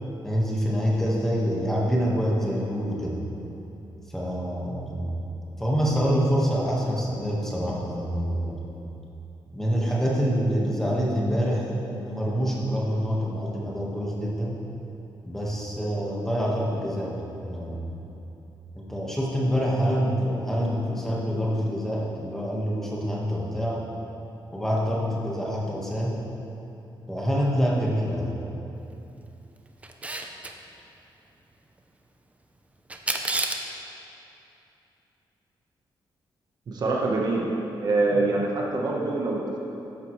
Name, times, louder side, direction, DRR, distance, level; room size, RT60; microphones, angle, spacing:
voice 1, 0.2-3.2 4.1-5.2 5.6-8.6 9.5-14.6 15.2-18.0 18.7-23.8 24.5-26.1 27.1-28.3, equal, 5° left, -5 dB, 1.5 m, -26 dB
Camera, 29.8-30.5 32.9-33.7, right 2 dB, 15° right, 0.6 m, -29 dB
voice 2, 36.7-37.5 37.8-39.6, right 3 dB, 50° right, -1 dB, 1.2 m, -25 dB
12.5 x 10.5 x 3.2 m, 2.9 s
wide cardioid pair, 170°, 9 cm